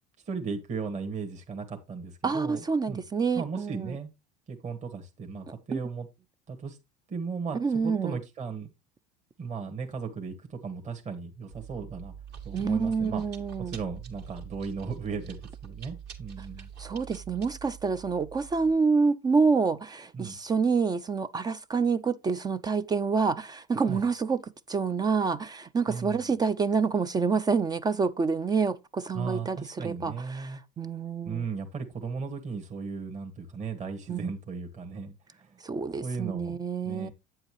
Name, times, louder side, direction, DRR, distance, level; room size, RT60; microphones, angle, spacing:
voice 1, 0.3-3.0 3.3-4.1 4.5-6.1 6.5-6.8 7.1-8.7 9.4-12.1 12.4-16.7 20.1-20.4 23.9-24.1 25.9-26.3 29.1-30.6 31.2-35.6 36.0-36.6 36.8-37.1, right 5 dB, 35° right, 1.7 m, -36 dB
voice 2, 2.2-3.9 5.7-5.8 7.6-8.2 12.5-13.8 16.8-24.4 24.7-31.4 34.1-34.2 35.6-37.1, right 5 dB, 20° right, 0.4 m, -27 dB
Chewing mastication, 11.5-18.7, right 9 dB, 55° right, 2.3 m, -45 dB
8.5 x 7.8 x 3.1 m
supercardioid pair, 105°, 21 cm